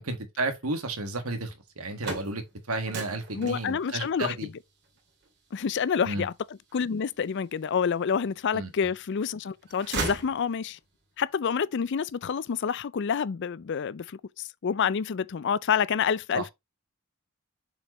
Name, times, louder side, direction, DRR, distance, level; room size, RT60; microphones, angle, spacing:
voice 1, 0.0-4.5 6.0-6.3 8.5-8.9 16.3-16.5, right 2 dB, 85° right, 1.8 m, -32 dB
sound 1, 1.7-7.7 8.2-9.1 9.4-11.0, right 3 dB, 55° right, 2.6 m, -38 dB
voice 2, 3.3-4.5 5.5-6.3 6.7-10.8 11.2-16.5, left 7 dB, 55° left, 0.4 m, -28 dB
7.0 x 5.0 x 3.1 m
head